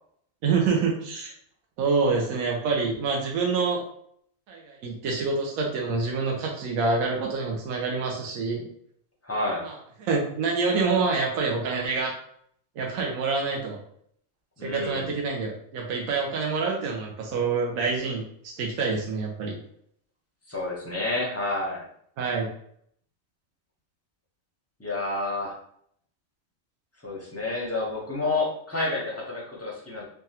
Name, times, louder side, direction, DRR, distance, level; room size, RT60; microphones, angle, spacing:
voice 1, 0.4-1.3 1.8-3.8 4.5-8.7 9.6-9.7 10.0-12.2 12.8-13.8 14.6-19.6 22.2-22.5, right 4 dB, 80° right, -1 dB, 1.1 m, -26 dB
voice 2, 9.2-9.6 14.6-15.2 20.5-21.9 24.8-25.5 27.0-30.0, left 2 dB, 20° left, -4 dB, 0.4 m, -29 dB
3.3 x 2.3 x 2.7 m, 0.67 s
omnidirectional pair, 1.4 m